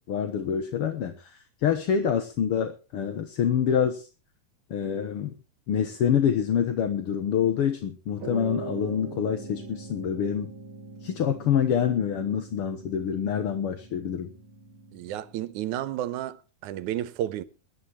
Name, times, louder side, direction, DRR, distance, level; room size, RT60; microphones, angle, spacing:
voice 1, 0.1-4.1 4.7-5.3 5.7-10.5 11.0-14.3, left 8 dB, 55° left, 1.9 m, -26 dB
sound 1, 8.2-15.9, right 4 dB, 45° right, 2.4 m, -42 dB
voice 2, 14.9-17.4, right 12 dB, 80° right, 2.3 m, -32 dB
23.5 x 11.5 x 3.0 m
omnidirectional pair, 3.5 m